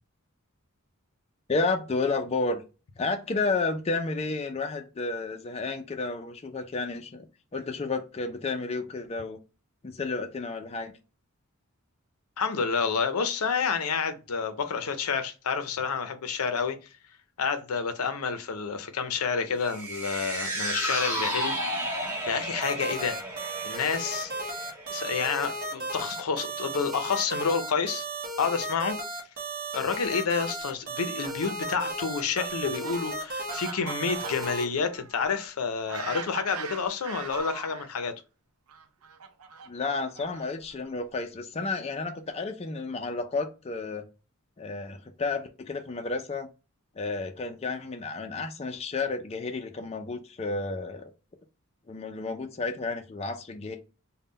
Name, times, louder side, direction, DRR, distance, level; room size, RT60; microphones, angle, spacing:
voice 1, 1.5-2.6 3.0-7.3 7.5-9.4 9.8-10.9 39.7-44.1 44.6-46.5 47.0-51.1 51.9-53.8, left 3 dB, 30° left, 0.4 m, -31 dB
voice 2, 12.4-16.8 17.4-23.2 23.6-24.3 24.9-28.0 28.4-29.0 29.7-38.1, left 5 dB, 85° left, 0.6 m, -29 dB
sound 1, 19.6-26.1 26.4-26.5, right 1 dB, 10° right, 1.3 m, -33 dB
sound 2, 22.6-34.6, right 1 dB, 40° right, 0.9 m, -35 dB
Fowl, 31.0-37.9 38.7-40.7, right 6 dB, 90° right, 0.6 m, -41 dB
3.6 x 2.2 x 3.8 m
head